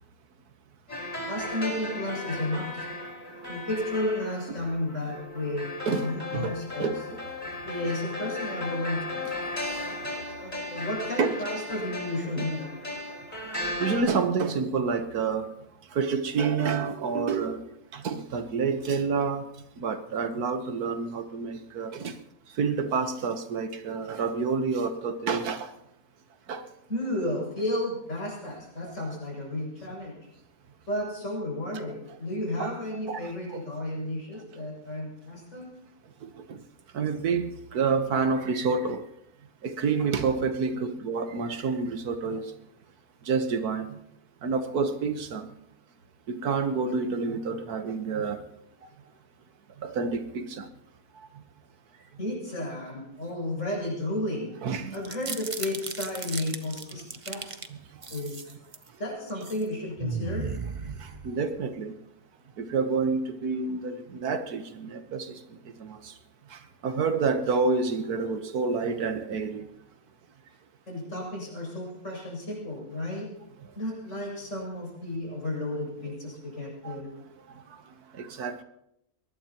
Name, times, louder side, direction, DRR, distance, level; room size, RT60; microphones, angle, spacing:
sound 1, 0.9-14.0, left 2 dB, 30° left, 5.1 m, -36 dB
voice 1, 1.3-2.8 3.5-6.9 7.7-9.0 10.4-12.7 26.9-30.3 30.9-35.7 52.2-54.5 54.9-57.6 58.1-58.4 59.0-60.5 70.9-73.3 73.8-77.1, left 1 dB, 55° left, 7.5 m, -33 dB
voice 2, 5.9-6.5 6.8-7.2 9.6-10.0 11.2-11.4 12.4-12.5 13.8-15.5 15.9-17.6 17.9-19.5 19.8-22.2 22.6-25.7 26.5-26.6 31.9-32.0 32.6-32.7 33.1-33.7 36.2-36.6 36.9-39.0 39.6-42.5 43.2-44.0 44.4-45.5 46.3-48.4 49.8-50.7 54.6-55.0 57.7-57.8 60.9-61.9 62.6-65.4 65.8-66.1 66.5-69.6 76.8-77.0 78.1-78.6, right 5 dB, 85° right, 1.7 m, -28 dB
sound 2, 54.9-57.7 58.0-58.9 59.3-59.6 60.0-61.6, right 4 dB, 30° right, 0.7 m, -36 dB
22.5 x 19.5 x 3.0 m
omnidirectional pair, 1.6 m